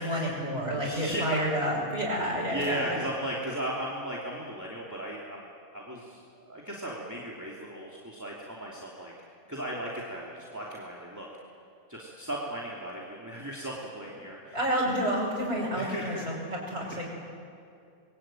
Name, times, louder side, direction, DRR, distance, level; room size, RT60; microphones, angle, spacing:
voice 1, 0.0-3.0 14.5-17.1, equal, 35° right, -6 dB, 5.8 m, -29 dB
voice 2, 0.8-1.4 2.4-5.4 5.7-9.1 9.5-11.3 11.9-14.6 14.8-14.9 15.7-16.3 16.8-17.0, right 1 dB, 15° right, -4 dB, 2.9 m, -36 dB
27.0 x 22.0 x 9.2 m, 2.4 s
omnidirectional pair, 1.3 m